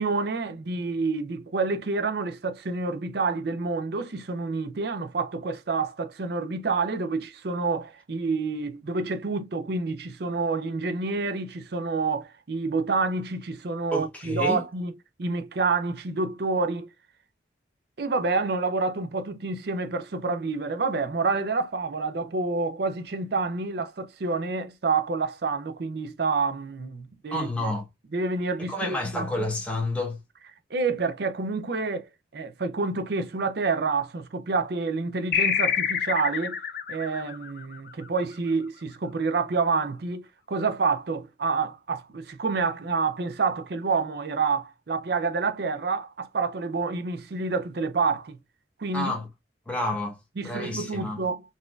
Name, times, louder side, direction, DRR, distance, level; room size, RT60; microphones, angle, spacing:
voice 1, 0.0-14.9 15.2-16.9 18.0-27.7 28.1-29.3 30.7-32.1 32.3-36.6 36.9-48.4 48.8-49.1 50.4-51.4, right 4 dB, 55° right, 0.5 m, -28 dB
voice 2, 13.9-14.6 27.3-27.9 28.7-30.2 48.9-49.3 49.7-51.2, left 1 dB, 5° left, 0.9 m, -30 dB
sound 1, 35.3-38.3, left 7 dB, 50° left, 0.5 m, -27 dB
4.0 x 2.6 x 2.2 m
head